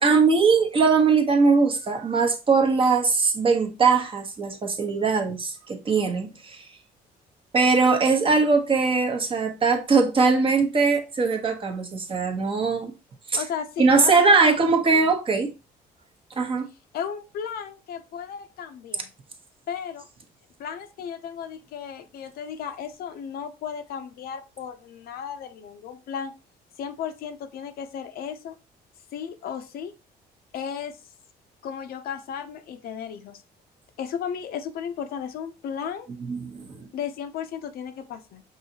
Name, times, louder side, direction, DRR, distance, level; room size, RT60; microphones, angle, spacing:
voice 1, 0.0-6.6 7.5-12.9 13.3-13.4 13.8-15.5 16.4-16.7 36.3-36.9, right 4 dB, 30° right, 0.9 m, -21 dB
voice 2, 13.4-14.5 14.9-15.1 16.9-19.1 19.7-20.1 20.6-26.3 26.8-28.6 29.1-29.9 30.5-31.0 31.6-33.4 34.0-36.1 36.9-38.4, left 7 dB, 65° left, 0.6 m, -34 dB
5.5 x 2.7 x 2.8 m
cardioid pair, 110°, 17 cm